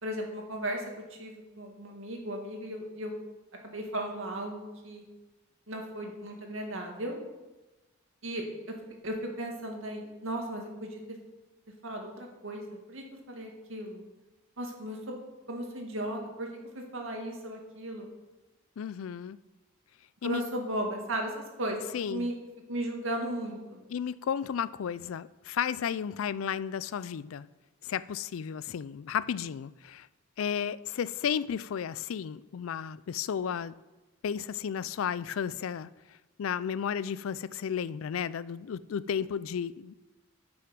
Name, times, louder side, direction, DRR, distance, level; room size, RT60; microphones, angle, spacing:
voice 1, 0.0-0.8 1.2-3.1 3.6-5.0 5.7-7.2 8.2-8.4 9.0-11.0 11.8-14.0 14.6-15.2 15.5-16.5 16.7-18.1 20.2-22.4 22.7-23.8, right 1 dB, 75° right, 2.0 m, -36 dB
voice 2, 18.8-19.4 20.2-20.4 21.9-22.3 23.9-27.5 27.8-30.1 30.4-33.7 34.2-35.9 36.4-40.0, left 8 dB, 90° left, 0.4 m, -33 dB
9.5 x 6.2 x 6.1 m
head